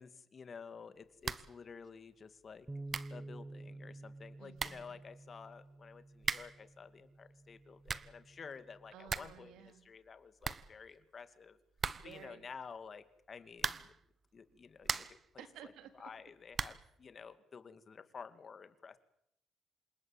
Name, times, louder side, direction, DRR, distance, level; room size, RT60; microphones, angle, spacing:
voice 1, 0.0-2.7 3.1-11.6 12.0-13.9 14.3-19.0, left 5 dB, 45° left, 11 dB, 2.5 m, -52 dB
sound 1, 1.2-1.6 1.9-2.0 2.6-2.7 2.9-3.2 4.2-4.3 4.6-4.9 6.2-6.7 7.6-8.2 8.6-8.7 8.9-9.4 9.7-9.8 10.1-10.2 10.4-11.2 11.8-12.3 13.5-14.0 14.5-15.3 16.5-16.9, right 5 dB, 40° right, 1.1 m, -39 dB
Bass guitar, 2.7-8.9, right 2 dB, 15° right, 1.0 m, -51 dB
voice 2, 4.4-5.0 8.9-9.9 11.9-12.5 15.4-16.1, right 9 dB, 90° right, 9 dB, 3.4 m, -54 dB
27.5 x 18.5 x 9.0 m, 0.74 s
cardioid pair, 90°, 0 cm